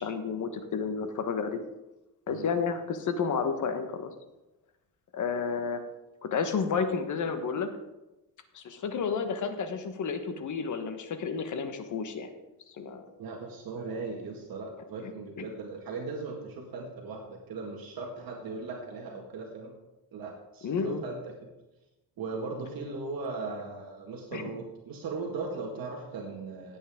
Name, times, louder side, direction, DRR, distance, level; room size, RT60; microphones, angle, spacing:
voice 1, 0.0-1.6 2.3-4.1 5.1-5.8 6.2-7.7 8.5-12.3 12.8-13.1 15.0-15.1 20.6-21.0 24.3-24.5, left 5 dB, 45° left, 8 dB, 1.3 m, -31 dB
voice 2, 13.2-19.7 20.1-21.5 22.2-26.8, right 3 dB, 55° right, 0 dB, 2.0 m, -38 dB
17.0 x 8.6 x 3.7 m, 1.0 s
cardioid pair, 155°, 41 cm